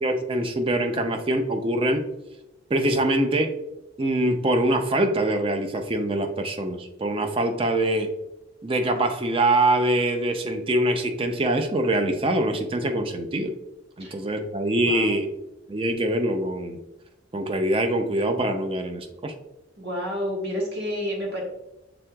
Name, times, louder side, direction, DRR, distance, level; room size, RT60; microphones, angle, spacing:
voice 1, 0.0-2.0 2.7-3.5 4.0-8.1 8.6-13.5 14.0-15.3 15.7-16.8 17.3-19.3, right 1 dB, 30° right, 6 dB, 0.4 m, -24 dB
voice 2, 14.8-15.1 19.8-21.4, equal, 60° right, -1 dB, 1.3 m, -29 dB
6.0 x 3.7 x 2.2 m, 0.94 s
head